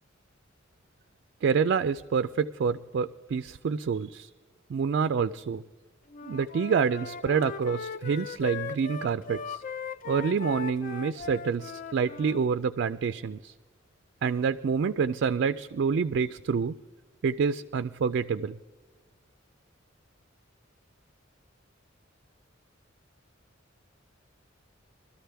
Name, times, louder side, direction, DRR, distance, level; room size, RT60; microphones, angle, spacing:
voice 1, 1.4-4.3 4.7-5.6 6.2-9.6 10.1-13.5 14.2-16.8 17.2-18.6, right 6 dB, 55° right, 11 dB, 0.3 m, -27 dB
Wind instrument woodwind instrument, 6.1-12.4, left 5 dB, 40° left, 0.4 m, -38 dB
22.0 x 13.0 x 3.4 m, 1.4 s
head